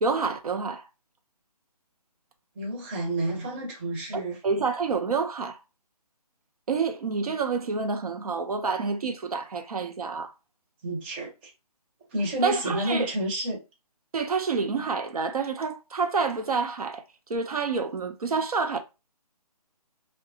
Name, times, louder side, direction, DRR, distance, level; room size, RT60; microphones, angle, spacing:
voice 1, 0.0-0.8 4.1-5.6 6.7-10.3 12.4-13.1 14.1-17.0 17.3-18.8, right 4 dB, 65° right, 0.5 m, -28 dB
voice 2, 2.6-4.4 10.8-11.5 12.1-13.6, right 1 dB, 15° right, 0.7 m, -30 dB
2.7 x 2.2 x 2.6 m
figure-of-eight pair, 150°, 20 cm